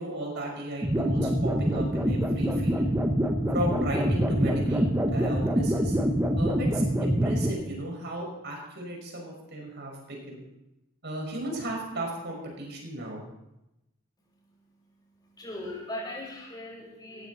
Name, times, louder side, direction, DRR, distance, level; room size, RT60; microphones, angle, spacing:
voice 1, 0.0-2.9 3.5-6.0 6.4-10.4 11.0-13.2, right 1 dB, 60° right, 0 dB, 5.7 m, -35 dB
sound 1, 0.8-7.5, equal, 15° right, 1.4 m, -25 dB
voice 2, 15.2-17.3, left 1 dB, 20° left, -3 dB, 6.0 m, -39 dB
17.0 x 15.0 x 4.2 m, 0.90 s
head